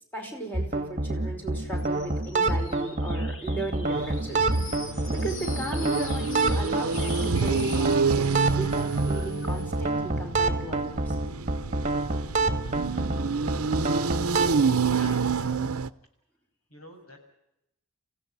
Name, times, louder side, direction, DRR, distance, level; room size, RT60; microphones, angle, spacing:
voice 1, 0.1-4.5 5.1-11.2, right 2 dB, 10° left, 2 dB, 5.1 m, -36 dB
sound 1, 0.5-14.5, right 2 dB, 35° right, 1.8 m, -28 dB
sound 2, 1.8-9.8, left 4 dB, 60° left, 3.1 m, -43 dB
sound 3, 3.9-15.9, right 5 dB, 85° right, 0.8 m, -28 dB
voice 2, 13.6-14.3 14.9-15.7 16.7-17.2, left 2 dB, 80° left, 5 dB, 6.8 m, -48 dB
28.0 x 15.5 x 9.6 m, 0.83 s
head